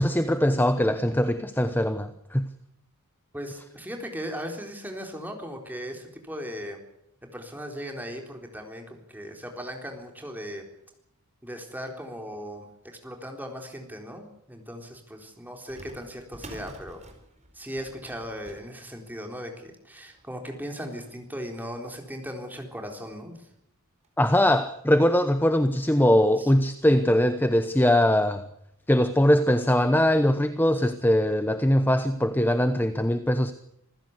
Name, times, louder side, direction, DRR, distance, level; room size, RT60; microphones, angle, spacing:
voice 1, 0.0-2.5 24.2-28.5 28.9-33.5, left 1 dB, 10° left, 0.9 m, -21 dB
voice 2, 3.3-6.8 7.3-10.7 11.4-17.0 17.5-23.3 26.4-26.5, equal, 10° right, 4.0 m, -38 dB
sound 1, 15.7-22.6 23.2-23.3 23.5-23.6 24.0-24.8 25.3-25.4 26.2-26.3 26.7-26.8 28.2-28.4 28.8-28.9 29.6-29.7, right 1 dB, 30° right, 4.7 m, -50 dB
26.5 x 15.5 x 8.2 m
head